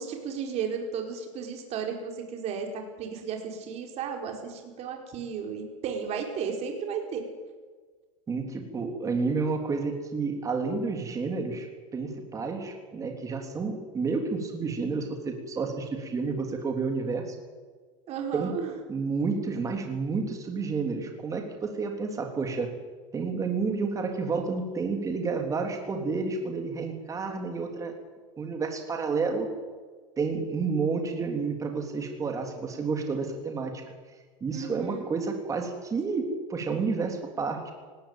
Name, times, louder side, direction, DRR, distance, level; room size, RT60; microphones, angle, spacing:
voice 1, 0.0-7.2 18.1-18.7 34.5-35.1, right 6 dB, 40° right, 3 dB, 4.9 m, -34 dB
voice 2, 8.3-11.7 11.9-17.4 18.3-18.6 18.9-22.7 23.1-28.0 28.4-29.5 30.2-33.8 34.4-37.7, right 4 dB, 20° right, 4 dB, 3.6 m, -30 dB
19.0 x 17.0 x 9.0 m, 1.4 s
supercardioid pair, 140°, 17 cm